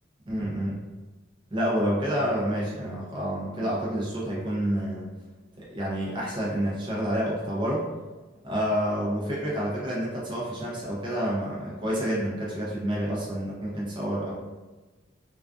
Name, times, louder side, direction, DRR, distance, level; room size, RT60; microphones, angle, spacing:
voice 1, 0.3-0.7 1.5-5.1 5.6-7.8 8.4-14.3, equal, 25° right, -6 dB, 0.5 m, -28 dB
2.3 x 2.3 x 2.4 m, 1.2 s
head